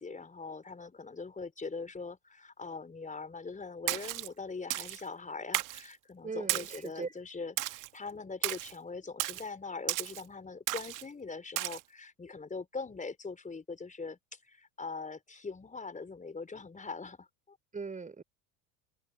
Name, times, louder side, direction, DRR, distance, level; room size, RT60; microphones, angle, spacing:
voice 1, 0.0-17.6, left 4 dB, 15° left, 4.5 m, -42 dB
Splash splatter, 3.9-4.3 4.7-5.0 5.5-5.9 6.5-6.9 7.6-7.9 8.4-8.7 9.2-9.4 9.9-10.2 10.7-11.0 11.6-11.8, right 18 dB, 45° right, 1.7 m, -34 dB
voice 2, 6.2-7.1 17.7-18.2, right 4 dB, 15° right, 3.6 m, -39 dB
figure-of-eight pair, 70°, 45 cm